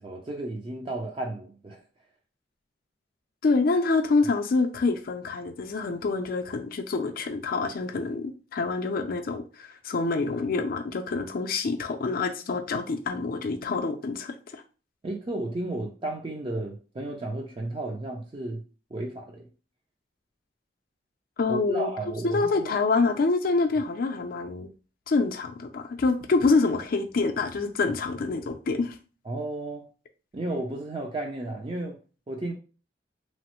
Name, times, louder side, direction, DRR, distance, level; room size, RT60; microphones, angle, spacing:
voice 1, 0.0-1.8 15.0-18.6 18.9-19.5 21.5-22.8 29.3-29.9 30.3-32.0 32.3-32.5, right 2 dB, 30° right, 0.4 m, -33 dB
voice 2, 3.4-14.6 21.4-21.9 22.2-24.7 25.1-29.0, left 3 dB, 55° left, 0.4 m, -26 dB
3.0 x 2.0 x 2.9 m
head